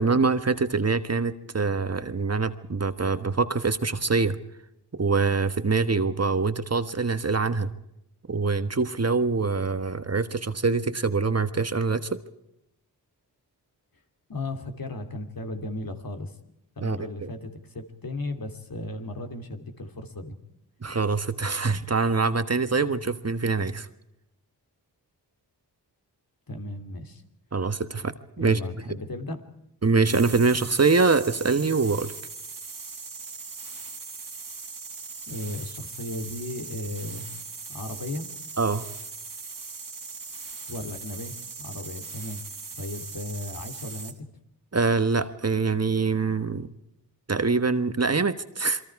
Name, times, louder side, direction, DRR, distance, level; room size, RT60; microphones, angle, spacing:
voice 1, 0.0-4.4 4.9-7.7 8.3-12.2 16.8-17.3 20.8-23.9 27.5-28.6 29.8-32.1 38.6-38.9 44.7-46.7 47.3-48.8, right 4 dB, 35° right, 10 dB, 1.4 m, -24 dB
voice 2, 14.3-16.3 16.8-20.4 26.5-27.2 28.4-29.5 35.3-37.3 37.7-38.3 40.7-42.4 42.7-44.1, left 2 dB, 55° left, 5 dB, 3.0 m, -35 dB
sound 1, 30.0-44.2, right 4 dB, 55° right, 2.5 m, -40 dB
28.5 x 23.0 x 4.8 m, 0.82 s
cardioid pair, 65°, 41 cm